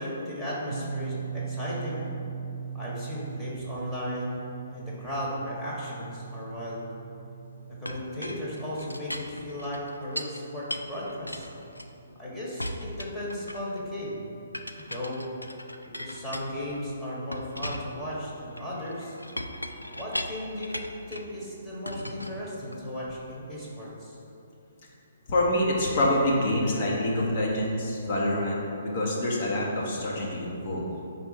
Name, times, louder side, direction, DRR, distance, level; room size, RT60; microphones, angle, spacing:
voice 1, 0.0-2.1 2.7-6.8 7.8-11.5 12.2-14.2 14.8-15.2 15.8-19.2 20.0-20.8 21.1-24.2, left 1 dB, 10° left, -7 dB, 1.5 m, -36 dB
sound 1, 0.7-13.6, right 6 dB, 65° right, 0.4 m, -40 dB
Chink clink, 7.9-10.4 10.7-12.2 12.6-13.8 14.5-16.8 17.3-21.3 21.9-23.0, left 1 dB, 90° left, 0.4 m, -38 dB
voice 2, 25.3-30.9, left 1 dB, 40° left, -3 dB, 1.4 m, -26 dB
5.4 x 4.1 x 5.8 m, 2.8 s
figure-of-eight pair, 130°, 0 cm